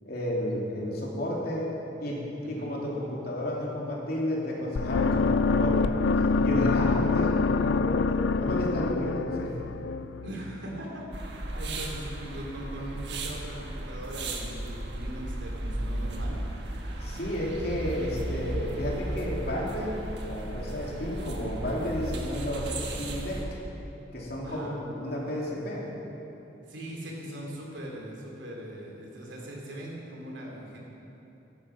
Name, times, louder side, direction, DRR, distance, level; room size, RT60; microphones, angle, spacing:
voice 1, 0.0-1.7 2.0-6.0 6.4-9.5 17.0-23.5 24.1-25.9, equal, 55° left, -4 dB, 3.1 m, -32 dB
sound 1, 4.8-10.8, left 4 dB, 75° left, 0.4 m, -26 dB
voice 2, 10.2-16.4 24.4-24.7 26.7-30.8, right 1 dB, 80° right, -2 dB, 3.3 m, -40 dB
sound 2, 11.1-23.4, right 1 dB, 65° right, 1.5 m, -35 dB
15.0 x 12.0 x 6.0 m, 2.9 s
head